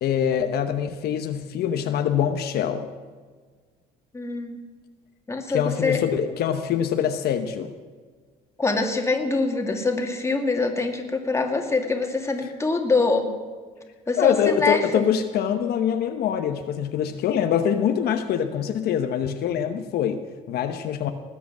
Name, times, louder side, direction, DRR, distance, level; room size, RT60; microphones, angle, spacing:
voice 1, 0.0-2.9 5.5-7.7 14.2-21.1, left 8 dB, 70° left, 7 dB, 1.0 m, -24 dB
voice 2, 4.1-4.6 5.3-6.0 8.6-13.3 14.1-15.1, left 3 dB, 15° left, 3 dB, 2.3 m, -24 dB
19.5 x 8.0 x 7.4 m, 1.5 s
cardioid pair, 110°, 17 cm